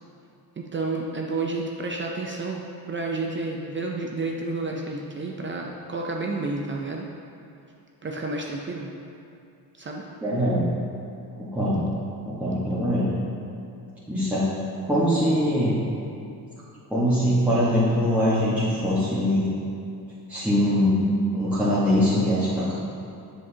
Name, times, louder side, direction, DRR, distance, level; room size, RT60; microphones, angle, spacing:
voice 1, 0.6-2.6 2.9-7.1 8.0-8.9 9.8-10.0, right 3 dB, 30° right, 0 dB, 0.5 m, -30 dB
voice 2, 10.2-10.7 11.4-11.8 12.2-13.1 14.1-14.5 14.8-15.7 16.9-19.5 20.3-21.1 21.3-22.7, equal, 5° right, -11 dB, 1.3 m, -22 dB
7.4 x 6.5 x 2.8 m, 2.6 s
cardioid pair, 115°, 41 cm